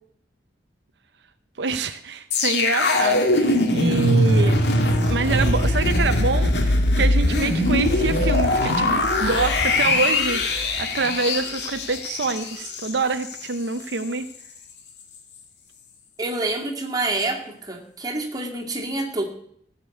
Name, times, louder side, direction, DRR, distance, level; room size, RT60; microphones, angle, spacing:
voice 1, 1.6-4.6 5.1-10.4 10.8-14.3, right 4 dB, 70° right, 10 dB, 0.7 m, -26 dB
sound 1, 2.3-13.5 13.8-14.0, left 1 dB, 65° left, 2.2 m, -21 dB
voice 2, 16.2-19.2, right 2 dB, 20° right, 0 dB, 2.3 m, -27 dB
15.5 x 6.7 x 8.3 m, 0.68 s
head